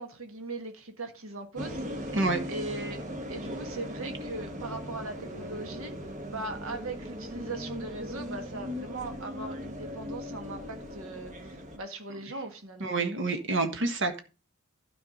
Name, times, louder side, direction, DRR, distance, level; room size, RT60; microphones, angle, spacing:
voice 1, 0.0-2.1 2.5-5.9 6.2-12.9, right 2 dB, 80° right, 1.6 m, -39 dB
sound 1, 1.5-11.8, equal, 35° right, 1.5 m, -39 dB
voice 2, 12.8-14.2, right 3 dB, 60° right, 1.5 m, -28 dB
12.5 x 4.8 x 5.1 m
head